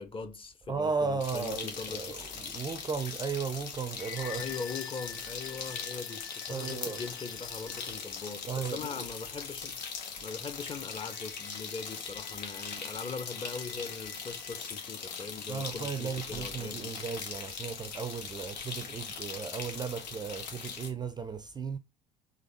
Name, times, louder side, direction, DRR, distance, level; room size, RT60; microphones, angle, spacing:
voice 1, 0.0-2.1 4.3-9.8 10.2-16.9, left 5 dB, 25° left, 0.8 m, -41 dB
voice 2, 0.7-4.5 6.5-7.0 8.5-9.1 15.5-21.8, right 5 dB, 20° right, 0.4 m, -35 dB
sound 1, 1.2-20.9, left 6 dB, 85° left, 1.0 m, -40 dB
sound 2, 3.6-8.2 11.0-15.0, left 9 dB, 40° left, 1.8 m, -49 dB
4.0 x 3.1 x 4.0 m
hypercardioid pair, 70°, 21 cm